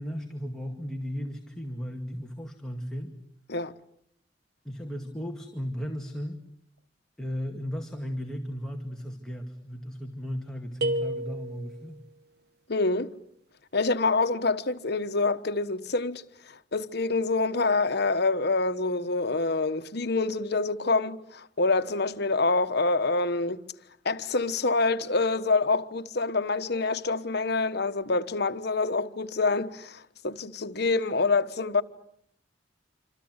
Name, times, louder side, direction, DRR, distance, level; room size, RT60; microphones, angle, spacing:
voice 1, 0.0-3.2 4.6-6.4 7.2-12.0, equal, 5° left, 2.1 m, -35 dB
sound 1, 10.8-12.0, right 1 dB, 60° right, 2.0 m, -31 dB
voice 2, 12.7-13.1 13.7-16.2 16.7-23.6 24.0-31.8, left 3 dB, 60° left, 1.3 m, -26 dB
27.0 x 26.5 x 8.2 m
head